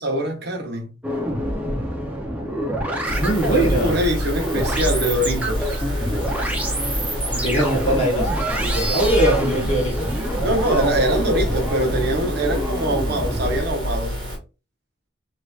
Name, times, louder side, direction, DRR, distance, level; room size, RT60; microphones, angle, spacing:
voice 1, 0.0-0.9 3.5-5.8 10.4-14.2, right 1 dB, 55° right, 0.8 m, -23 dB
sound 1, 1.0-13.6, right 1 dB, 5° right, 0.5 m, -27 dB
voice 2, 3.1-4.0 7.3-8.3 8.6-10.1, right 1 dB, 30° left, 1.1 m, -21 dB
sound 2, 3.1-14.4, equal, 25° right, 1.4 m, -27 dB
3.1 x 2.9 x 2.3 m
head